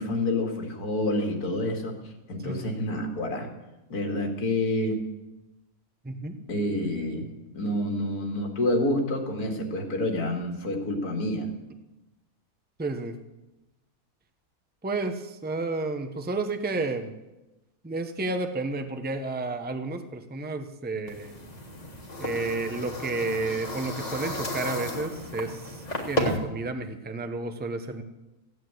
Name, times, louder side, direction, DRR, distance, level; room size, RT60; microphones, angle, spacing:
voice 1, 0.0-2.0 2.3-3.5 3.9-5.0 6.5-7.2 7.5-11.5, left 1 dB, 85° left, 2 dB, 2.6 m, -28 dB
voice 2, 2.4-2.8 6.0-6.4 12.8-13.2 14.8-17.2 17.8-21.4 22.2-28.0, right 3 dB, 10° right, 6 dB, 0.7 m, -31 dB
sound 1, 21.1-26.4, left 1 dB, 25° left, 1.8 m, -33 dB
15.5 x 9.4 x 7.9 m, 1.0 s
omnidirectional pair, 1.6 m